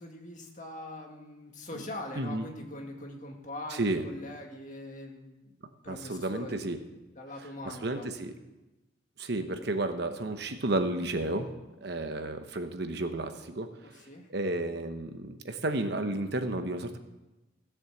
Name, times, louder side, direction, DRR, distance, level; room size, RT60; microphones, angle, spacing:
voice 1, 0.0-5.5 5.8-6.6 7.1-8.1 13.8-14.3, left 1 dB, 40° left, 2 dB, 2.0 m, -42 dB
voice 2, 2.1-2.5 3.7-4.0 5.9-6.8 7.6-8.3 9.2-11.5 11.8-13.7 14.3-17.0, right 2 dB, 55° right, 7 dB, 1.0 m, -32 dB
16.0 x 7.3 x 7.2 m, 1.0 s
head